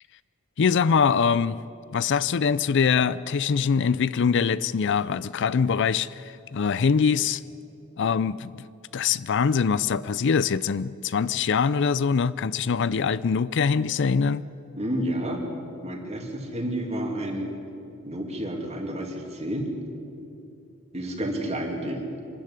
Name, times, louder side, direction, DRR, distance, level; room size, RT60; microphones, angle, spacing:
voice 1, 0.6-1.6 1.9-7.4 8.0-8.6 8.9-14.4, left 6 dB, 55° left, 17 dB, 0.4 m, -23 dB
voice 2, 14.7-15.4 15.8-17.5 18.0-19.7 20.9-22.1, right 1 dB, 30° right, 2 dB, 2.8 m, -30 dB
25.0 x 13.5 x 10.0 m, 2.7 s
head